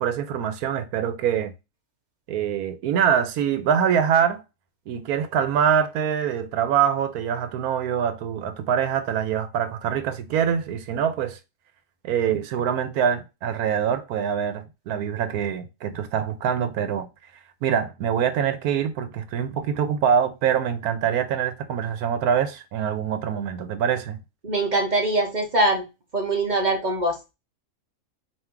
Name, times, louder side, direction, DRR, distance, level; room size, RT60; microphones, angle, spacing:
voice 1, 0.0-1.5 2.3-4.4 4.9-11.4 12.0-17.1 17.6-24.2, right 8 dB, 85° right, 1.2 m, -24 dB
voice 2, 24.4-25.8 26.1-27.3, right 2 dB, 35° right, 0.8 m, -23 dB
4.5 x 2.9 x 3.6 m
omnidirectional pair, 1.5 m